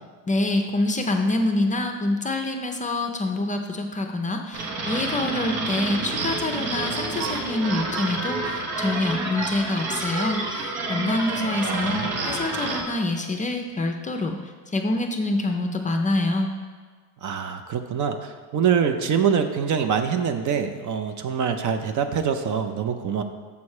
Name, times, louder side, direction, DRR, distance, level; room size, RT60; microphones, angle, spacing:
voice 1, 0.3-16.5, left 2 dB, 20° left, 4 dB, 0.4 m, -26 dB
sound 1, 4.5-12.8, right 3 dB, 75° right, 1.2 m, -29 dB
voice 2, 11.6-12.2 17.2-23.2, right 7 dB, 50° right, 7 dB, 0.6 m, -25 dB
7.1 x 4.2 x 4.8 m, 1.5 s
cardioid pair, 110°, 39 cm